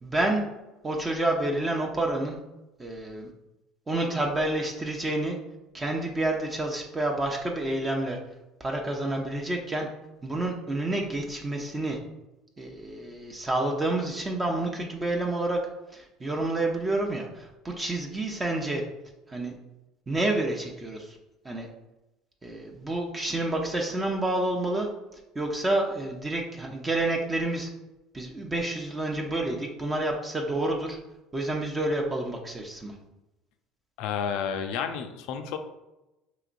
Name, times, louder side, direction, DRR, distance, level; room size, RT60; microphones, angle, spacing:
voice 1, 0.0-0.4 0.8-2.4 2.8-3.3 3.9-5.4 5.7-8.2 8.6-9.9 10.2-12.0 12.6-15.6 15.9-18.8 19.3-19.6 20.1-21.2 21.4-21.7 22.4-24.9 25.3-27.7 28.1-31.0 31.3-32.9, right 2 dB, 20° right, 1 dB, 0.6 m, -29 dB
voice 2, 34.0-35.6, left 7 dB, 75° left, 6 dB, 0.4 m, -31 dB
4.9 x 2.9 x 2.5 m, 0.97 s
supercardioid pair, 85°, 0 cm